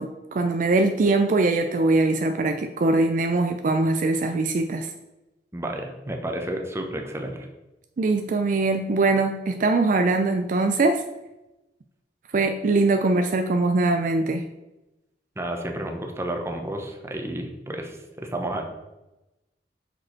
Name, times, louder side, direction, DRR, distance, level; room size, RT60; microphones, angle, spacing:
voice 1, 0.0-4.9 8.0-11.0 12.3-14.4, right 3 dB, 50° right, 7 dB, 0.4 m, -22 dB
voice 2, 5.5-7.5 15.4-18.6, right 1 dB, 15° right, 3 dB, 0.9 m, -31 dB
6.2 x 5.1 x 4.4 m, 0.99 s
head